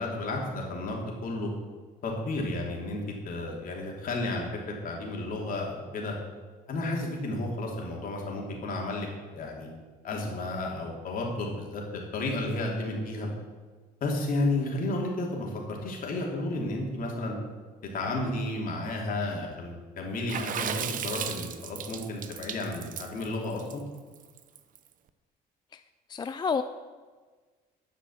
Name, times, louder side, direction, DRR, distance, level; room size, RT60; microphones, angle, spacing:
voice 1, 0.0-1.5 2.0-6.1 6.7-9.7 10.0-11.8 12.1-13.3 14.0-17.3 17.9-23.8, left 2 dB, 55° left, -1 dB, 3.1 m, -32 dB
Water / Splash splatter, 20.3-24.8, right 9 dB, 50° right, 0.7 m, -35 dB
voice 2, 26.1-26.6, left 5 dB, 25° left, 10 dB, 0.4 m, -29 dB
11.5 x 6.1 x 7.3 m, 1.4 s
cardioid pair, 110°, 17 cm